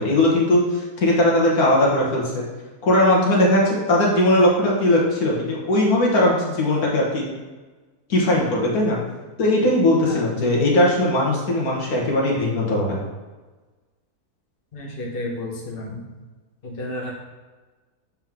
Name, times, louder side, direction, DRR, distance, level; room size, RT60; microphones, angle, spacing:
voice 1, 0.0-2.4 2.8-7.2 8.1-9.0 9.4-13.0, left 1 dB, 70° left, -3 dB, 1.8 m, -19 dB
voice 2, 14.7-16.0 16.6-17.1, left 1 dB, 40° left, -2 dB, 1.2 m, -31 dB
7.4 x 4.5 x 3.6 m, 1.3 s
omnidirectional pair, 1.6 m